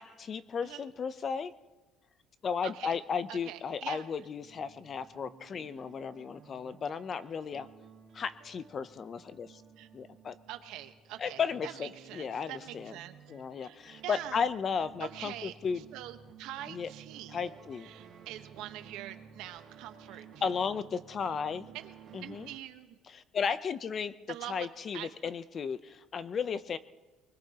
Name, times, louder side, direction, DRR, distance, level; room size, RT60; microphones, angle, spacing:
voice 1, 0.0-1.5 2.4-7.7 8.1-9.6 9.9-10.4 11.2-12.9 13.3-15.9 16.7-16.9 17.3-17.9 20.4-21.7 22.1-22.5 23.1-24.1 24.5-26.8, left 6 dB, 35° left, 14 dB, 0.5 m, -34 dB
voice 2, 2.6-3.0 3.3-4.0 9.8-9.9 10.5-13.2 13.6-13.8 14.0-14.5 15.0-15.5 15.9-17.4 17.8-20.3 21.2-21.3 21.7-23.0 24.3-24.7 24.9-25.1, right 13 dB, 75° right, 9 dB, 1.1 m, -44 dB
sound 1, 4.4-22.6, right 7 dB, 50° right, 1.9 m, -54 dB
24.0 x 20.5 x 2.9 m, 1.2 s
cardioid pair, 145°, 0 cm